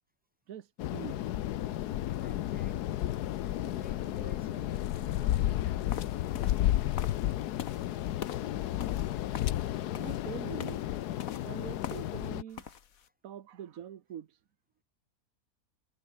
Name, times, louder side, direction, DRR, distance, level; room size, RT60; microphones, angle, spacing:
sound 1, 0.8-12.4, left 13 dB, 80° left, 1.3 m, -32 dB
voice 1, 0.9-1.3 10.0-10.8 11.4-12.7 13.2-14.3, right 10 dB, 60° right, 1.4 m, -44 dB
voice 2, 2.2-3.2 3.5-6.2, equal, 5° right, 4.0 m, -52 dB
sound 2, 5.9-12.3 12.5-13.0, left 8 dB, 60° left, 1.6 m, -44 dB
omnidirectional pair, 1.7 m